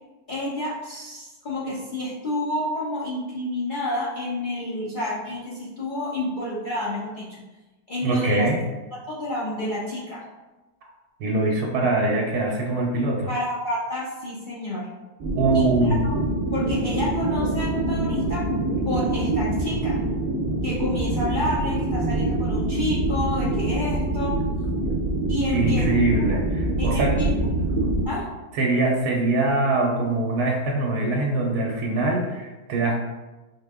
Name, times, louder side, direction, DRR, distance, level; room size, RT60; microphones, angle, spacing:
voice 1, 0.3-7.4 7.9-8.5 9.1-10.3 13.3-14.9 15.5-15.7 16.0-16.2 16.5-20.0 20.6-24.4 25.3-25.8 26.3-26.4 26.8-27.3 28.0-28.3, left 1 dB, 60° left, -7 dB, 0.5 m, -29 dB
voice 2, 8.0-8.6 11.2-13.3 15.4-16.0 25.5-27.1 28.5-33.0, right 2 dB, 75° right, -1 dB, 1.1 m, -23 dB
sound 1, 15.2-28.1, right 2 dB, 35° right, 1.1 m, -25 dB
4.5 x 2.1 x 3.4 m, 1.1 s
omnidirectional pair, 1.7 m